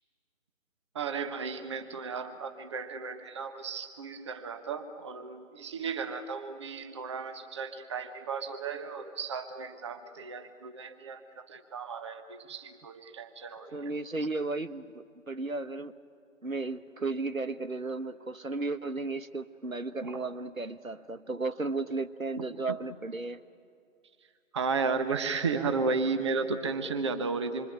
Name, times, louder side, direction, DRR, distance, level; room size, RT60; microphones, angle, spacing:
voice 1, 0.9-13.7 20.0-20.3 22.4-22.5 24.5-27.7, right 4 dB, 20° right, 9 dB, 1.1 m, -34 dB
voice 2, 13.7-15.9 16.4-23.4, right 3 dB, 90° right, 12 dB, 1.3 m, -34 dB
26.5 x 24.0 x 9.2 m, 2.4 s
figure-of-eight pair, 150°, 40 cm